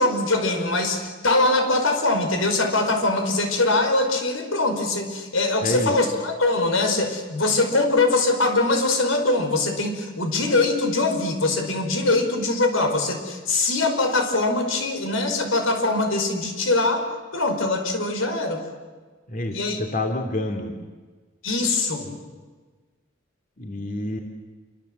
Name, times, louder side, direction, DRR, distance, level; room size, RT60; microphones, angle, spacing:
voice 1, 0.0-17.1 17.3-18.6 19.5-19.8 21.4-22.1, left 2 dB, 90° left, 5 dB, 5.3 m, -22 dB
voice 2, 5.6-5.9 19.3-20.7 23.6-24.2, left 1 dB, 40° left, 3 dB, 2.7 m, -28 dB
28.0 x 24.5 x 8.0 m, 1.4 s
head